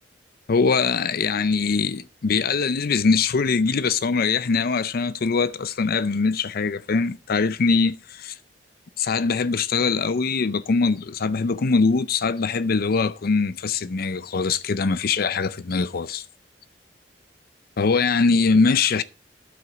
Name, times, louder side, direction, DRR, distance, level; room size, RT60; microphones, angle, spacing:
voice 1, 0.5-8.4 9.0-16.2 17.8-19.0, left 4 dB, 55° left, 0.5 m, -22 dB
9.8 x 7.7 x 5.1 m
head